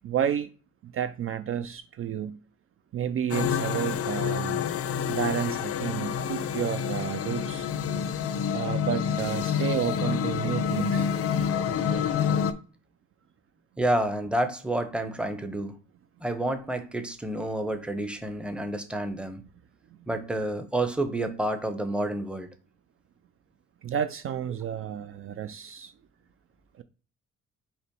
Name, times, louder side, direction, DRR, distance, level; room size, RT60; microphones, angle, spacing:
voice 1, 0.0-0.5 0.8-2.4 2.9-4.6 5.1-7.7 8.5-11.1 23.8-25.9 26.8-26.9, right 9 dB, 45° right, 0.4 m, -31 dB
sound 1, 3.3-12.5, left 7 dB, 50° left, 0.5 m, -28 dB
voice 2, 13.8-15.8 16.2-19.4 20.1-22.5, right 1 dB, 5° right, 0.7 m, -29 dB
5.6 x 2.1 x 4.5 m
cardioid pair, 90°, 30 cm